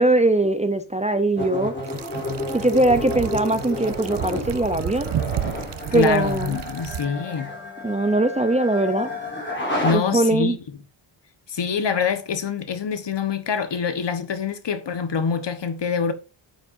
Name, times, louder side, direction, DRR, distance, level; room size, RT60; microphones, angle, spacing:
voice 1, 0.0-1.7 2.5-5.1 5.9-6.6 7.8-9.1 9.9-10.6, right 2 dB, 15° right, 0.6 m, -21 dB
sound 1, 1.4-9.9, left 1 dB, 20° left, 3.5 m, -31 dB
sound 2, 1.8-7.0, right 10 dB, 60° right, 0.6 m, -32 dB
voice 2, 5.9-7.5 9.8-10.6 11.5-16.1, left 6 dB, 60° left, 1.3 m, -25 dB
10.5 x 7.0 x 2.6 m
wide cardioid pair, 110°, 48 cm